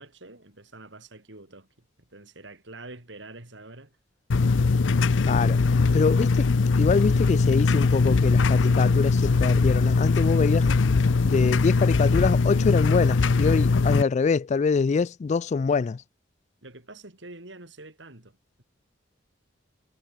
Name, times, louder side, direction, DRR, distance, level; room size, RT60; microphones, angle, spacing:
voice 1, 0.0-1.9 2.1-4.0 16.6-18.6, right 2 dB, 75° right, 4.1 m, -46 dB
sound 1, 4.3-14.0, left 4 dB, 85° left, 0.6 m, -21 dB
voice 2, 5.2-10.7 11.2-16.0, left 5 dB, 40° left, 0.3 m, -25 dB
head